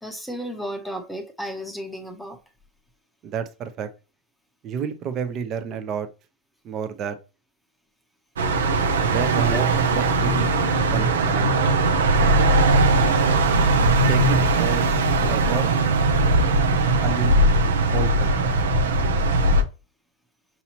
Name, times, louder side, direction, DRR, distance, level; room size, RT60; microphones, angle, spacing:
voice 1, 0.0-2.4 9.5-9.7 13.6-13.7, equal, ahead, 0.8 m, -33 dB
voice 2, 3.2-3.9 4.6-6.1 6.6-7.2 9.0-9.6 9.9-10.5 10.8-11.5 14.1-14.9 15.2-15.7 17.0-17.4 17.9-18.3, right 7 dB, 40° right, 0.6 m, -29 dB
sound 1, 8.4-19.6, right 2 dB, 80° right, 0.6 m, -19 dB
5.9 x 2.7 x 2.8 m
hypercardioid pair, 100°, 0 cm